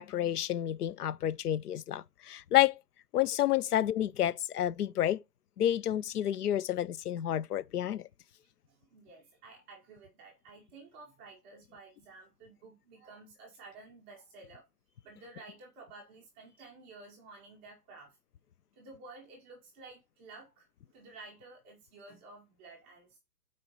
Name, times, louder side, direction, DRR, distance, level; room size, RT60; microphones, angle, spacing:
voice 1, 0.0-2.8 3.1-5.2 5.6-8.0, left 12 dB, 70° left, 0.6 m, -29 dB
voice 2, 8.7-18.2 18.7-23.2, right 3 dB, 10° right, 0.5 m, -53 dB
6.0 x 4.4 x 5.6 m
hypercardioid pair, 150°, 48 cm